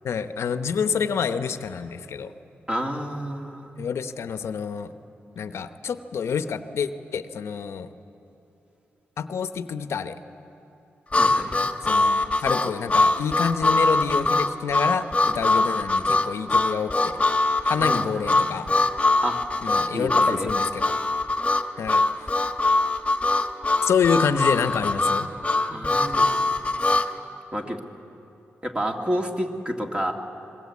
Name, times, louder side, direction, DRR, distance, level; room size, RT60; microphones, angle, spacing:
voice 1, 0.0-2.3 3.8-4.9 5.4-7.9 9.2-10.2 11.8-17.2 17.6-18.7 19.6-20.9 21.8-22.0 23.8-25.3, left 6 dB, 75° left, 10 dB, 0.9 m, -27 dB
voice 2, 2.7-3.8 11.1-11.6 17.8-18.2 19.2-19.4 19.9-20.5 25.5-26.4 27.5-27.8 28.6-30.1, equal, 20° right, 2 dB, 2.3 m, -30 dB
Harmonica, 11.1-27.1, left 2 dB, 25° left, 1.4 m, -22 dB
26.5 x 21.0 x 8.4 m, 2.9 s
cardioid pair, 75°, 5 cm